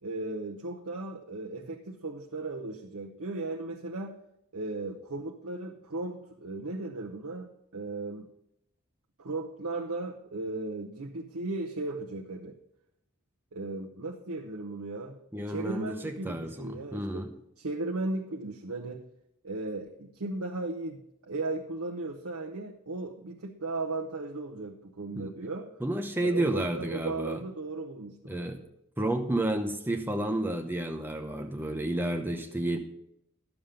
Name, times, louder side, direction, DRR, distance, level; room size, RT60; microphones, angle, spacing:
voice 1, 0.0-4.2 4.5-8.3 9.2-12.6 13.5-15.2 15.5-17.3 17.6-19.1 19.4-25.7 26.2-28.5, right 2 dB, 85° right, 1 dB, 0.9 m, -36 dB
voice 2, 15.3-17.3 25.1-25.3 25.8-27.4 28.2-28.6 29.0-32.8, right 1 dB, 10° right, 5 dB, 0.8 m, -31 dB
11.5 x 7.2 x 5.1 m, 0.77 s
head